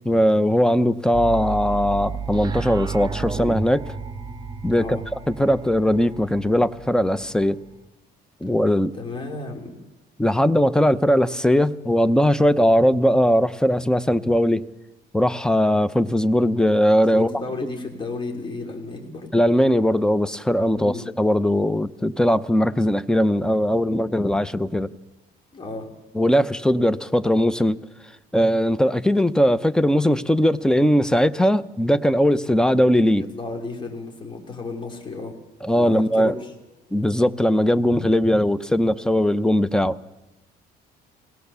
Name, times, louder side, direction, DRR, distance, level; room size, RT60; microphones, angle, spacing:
voice 1, 0.1-3.8 4.6-5.0 5.3-7.6 8.4-8.9 10.2-14.6 15.1-17.3 19.3-24.9 26.1-27.8 28.3-33.2 35.6-36.3 36.9-40.0, equal, 5° left, 0.7 m, -19 dB
sound 1, 1.1-7.9, right 5 dB, 25° right, 1.5 m, -32 dB
voice 2, 4.7-5.0 8.9-9.8 17.1-19.3 20.7-21.0 25.5-25.9 33.1-35.4 35.7-36.5, left 3 dB, 30° left, 3.1 m, -33 dB
22.5 x 17.5 x 6.9 m
cardioid pair, 110°, 17 cm